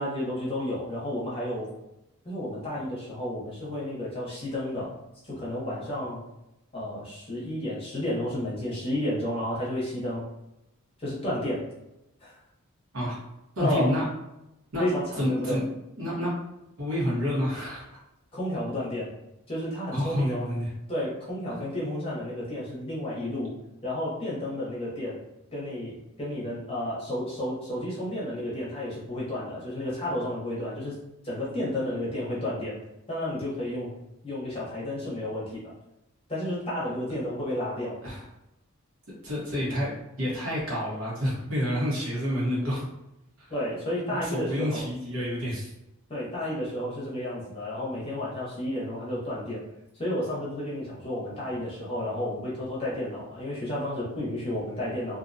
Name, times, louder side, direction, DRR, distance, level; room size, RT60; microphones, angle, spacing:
voice 1, 0.0-1.7 2.2-4.9 5.2-6.2 6.7-10.2 11.0-11.6 12.2-12.4 13.6-14.0 14.8-15.6 18.3-19.1 19.5-20.5 20.9-23.5 23.8-25.2 25.5-30.9 31.2-32.7 33.1-33.9 34.2-35.7 36.3-38.0 43.5-44.8 46.1-49.6 49.9-55.2, left 1 dB, 25° left, -7 dB, 0.9 m, -31 dB
voice 2, 13.6-14.0 14.7-14.8 15.2-15.6 16.0-16.3 16.8-17.9 19.9-20.7 38.0-38.2 39.1-42.9 43.4-43.5 44.2-45.7, equal, 65° right, -6 dB, 1.0 m, -29 dB
2.5 x 2.2 x 2.6 m, 0.89 s
head